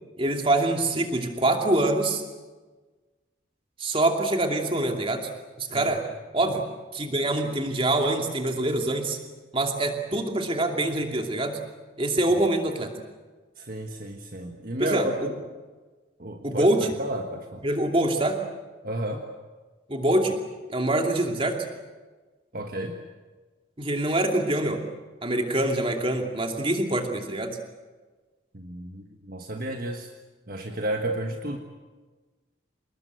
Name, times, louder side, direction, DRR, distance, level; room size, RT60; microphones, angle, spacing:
voice 1, 0.2-2.2 3.8-5.3 5.6-6.0 6.3-6.6 6.9-9.2 9.5-11.6 12.0-12.9 14.8-15.3 16.4-16.9 17.6-18.4 19.9-20.4 20.7-21.6 23.8-24.8 25.2-27.6, right 1 dB, 30° right, 3 dB, 2.6 m, -25 dB
voice 2, 13.6-15.1 16.2-16.7 17.0-17.6 18.8-19.3 22.5-23.0 28.5-30.1 30.5-31.6, right 1 dB, 45° right, 4 dB, 1.5 m, -32 dB
27.0 x 20.5 x 8.1 m, 1.3 s
head